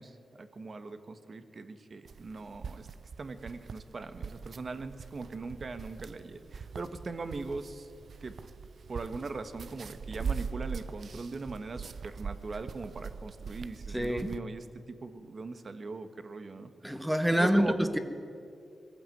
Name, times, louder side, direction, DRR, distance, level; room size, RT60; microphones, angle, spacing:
voice 1, 0.0-2.9 3.2-7.9 8.2-8.3 8.9-17.8, right 3 dB, 50° right, 10 dB, 1.6 m, -40 dB
sound 1, 2.1-14.4, right 6 dB, 65° right, 0.6 m, -42 dB
voice 2, 13.9-14.3 16.8-18.0, equal, 5° right, 8 dB, 1.7 m, -26 dB
21.5 x 15.0 x 9.3 m, 2.4 s
cardioid pair, 80°, 0 cm